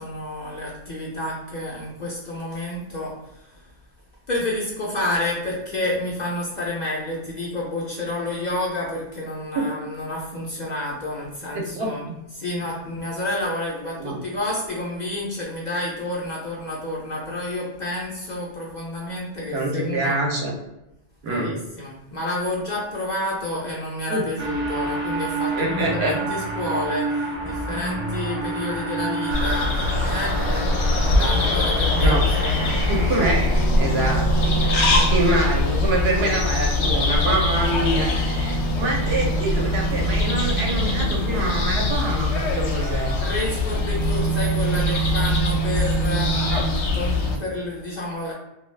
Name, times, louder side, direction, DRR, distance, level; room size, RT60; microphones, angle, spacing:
voice 1, 0.0-3.7 4.3-12.0 12.3-20.2 21.2-32.8 34.8-35.1 37.5-38.0 43.2-46.7 46.9-48.3, left 1 dB, 50° left, -4 dB, 0.6 m, -30 dB
voice 2, 11.5-12.2 14.0-14.2 19.5-20.5 21.2-21.6 24.1-24.2 25.5-26.1 32.0-32.2 32.9-33.5 33.8-34.3 34.6-43.1 46.5-46.6, right 2 dB, 65° right, 0 dB, 0.8 m, -25 dB
sound 1, 24.4-33.7, right 2 dB, 15° right, 0.5 m, -29 dB
sound 2, 29.3-47.4, left 1 dB, 75° left, 0.8 m, -22 dB
2.3 x 2.2 x 3.2 m, 0.92 s
omnidirectional pair, 1.2 m